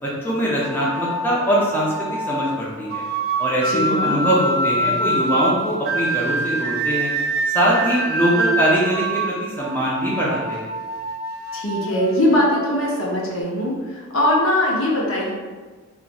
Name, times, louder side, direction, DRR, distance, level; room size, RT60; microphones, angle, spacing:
voice 1, 0.0-3.0 3.4-7.1 7.5-10.7, equal, 10° left, -6 dB, 0.5 m, -22 dB
sound 1, 0.6-13.4, right 2 dB, 45° right, 0.3 m, -26 dB
voice 2, 3.6-4.2 11.5-13.7 14.1-15.3, left 1 dB, 75° left, -4 dB, 0.8 m, -20 dB
2.5 x 2.4 x 3.9 m, 1.4 s
head